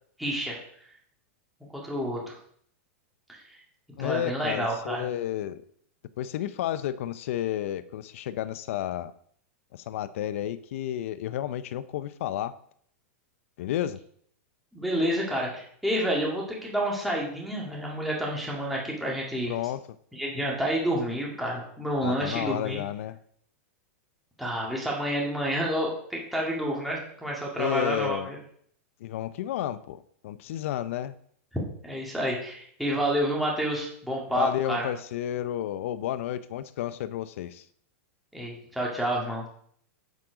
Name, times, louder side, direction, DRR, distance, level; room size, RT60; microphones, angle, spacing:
voice 1, 0.2-0.6 1.8-2.3 3.3-3.6 3.9-5.1 14.7-19.5 20.1-22.8 24.4-28.4 31.8-34.9 38.3-39.5, equal, ahead, -3 dB, 2.0 m, -29 dB
voice 2, 4.0-5.6 6.2-9.1 9.7-12.6 13.6-14.0 19.5-19.8 22.0-23.2 27.6-28.3 29.0-31.1 34.3-37.7, left 11 dB, 65° left, 14 dB, 0.6 m, -31 dB
7.6 x 7.4 x 5.0 m, 0.63 s
supercardioid pair, 155°, 8 cm